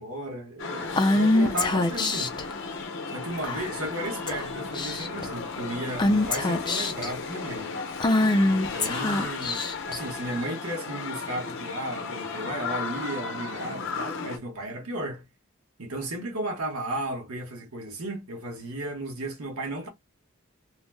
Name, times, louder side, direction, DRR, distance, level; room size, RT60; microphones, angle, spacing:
voice 1, 0.0-2.3 3.1-7.7 8.5-9.6 9.9-15.2 15.8-19.9, right 1 dB, 90° right, 0.9 m, -34 dB
sound 1, 0.6-14.4, left 4 dB, 55° left, 0.6 m, -35 dB
Female speech woman speaking / Whispering, 1.0-2.4 3.4-3.9 4.3-4.4 4.7-5.2 6.0-7.1 8.0-10.0, left 2 dB, 20° left, 0.3 m, -24 dB
2.7 x 2.0 x 3.2 m
head